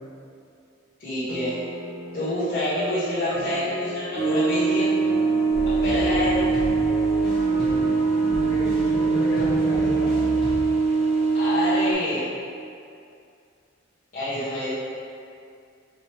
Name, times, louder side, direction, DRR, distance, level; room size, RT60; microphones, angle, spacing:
voice 1, 1.0-1.6 2.1-4.9 5.7-6.4 11.3-12.3 14.1-14.7, left 1 dB, 45° left, -17 dB, 1.3 m, -27 dB
sound 1, 1.3-10.4, right 1 dB, 90° right, 0.5 m, -39 dB
sound 2, 4.2-11.9, right 4 dB, 35° right, 0.5 m, -22 dB
sound 3, 5.5-10.5, equal, ahead, 1.4 m, -33 dB
voice 2, 8.3-10.1, equal, 75° left, -9 dB, 0.9 m, -31 dB
5.2 x 3.2 x 3.0 m, 2.4 s
head